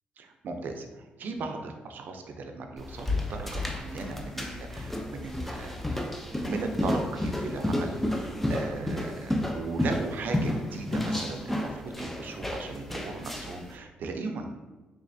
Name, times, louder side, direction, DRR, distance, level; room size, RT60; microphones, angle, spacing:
voice 1, 0.2-0.9 1.2-6.0 6.4-14.5, right 3 dB, 60° right, 5 dB, 0.4 m, -37 dB
sound 1, 2.8-13.7, left 1 dB, 5° left, 0.4 m, -31 dB
3.4 x 3.1 x 2.6 m, 1.2 s
cardioid pair, 110°, 4 cm